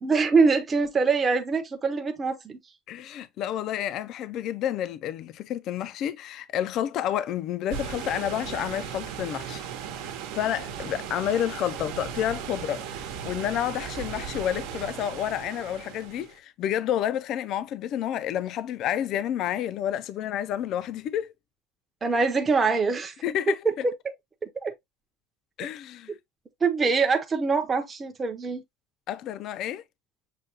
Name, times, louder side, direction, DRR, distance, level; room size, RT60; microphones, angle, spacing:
voice 1, 0.0-2.6 22.0-23.1 24.6-24.7 26.6-28.6, right 4 dB, 20° right, 0.6 m, -24 dB
voice 2, 2.9-9.7 10.3-21.3 23.2-23.8 25.6-26.1 29.1-29.8, left 10 dB, 50° left, 0.3 m, -30 dB
sound 1, 7.7-16.4, right 8 dB, 85° right, 0.9 m, -37 dB
6.6 x 2.2 x 2.8 m
cardioid pair, 145°, 0 cm